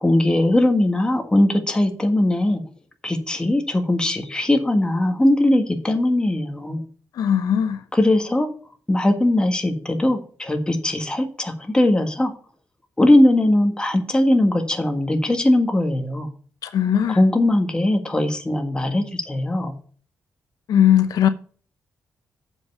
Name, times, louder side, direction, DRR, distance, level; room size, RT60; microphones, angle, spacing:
voice 1, 0.0-2.6 3.0-6.8 7.9-8.5 8.9-12.3 13.0-16.3 17.1-19.7, left 1 dB, 15° left, 1.6 m, -20 dB
voice 2, 7.1-7.8 16.6-17.2 20.7-21.3, left 9 dB, 80° left, 0.7 m, -18 dB
7.3 x 5.4 x 7.0 m
cardioid pair, 120°, 6 cm